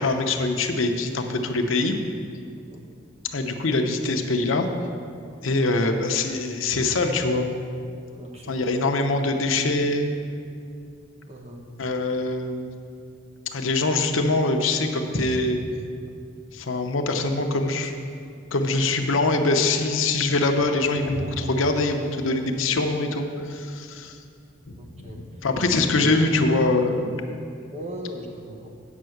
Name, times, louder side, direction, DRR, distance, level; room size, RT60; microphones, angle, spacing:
voice 1, 0.0-2.0 3.3-4.7 5.4-7.5 8.4-10.1 11.8-12.7 13.5-15.6 16.5-17.9 18.5-24.2 24.7-27.2, left 2 dB, 85° left, 5 dB, 0.8 m, -23 dB
voice 2, 8.1-8.6 11.3-11.6 24.8-25.2 27.7-28.7, equal, 30° right, 0 dB, 1.1 m, -39 dB
8.3 x 5.7 x 7.7 m, 2.4 s
head